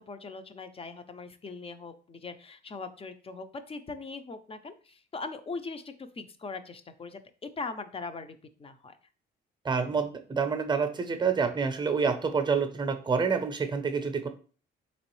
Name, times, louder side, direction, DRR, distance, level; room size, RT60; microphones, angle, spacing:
voice 1, 0.0-9.0, left 4 dB, 30° left, 10 dB, 0.5 m, -40 dB
voice 2, 9.6-14.3, right 5 dB, 25° right, 8 dB, 0.6 m, -28 dB
3.6 x 3.0 x 3.0 m, 0.38 s
cardioid pair, 90°, 20 cm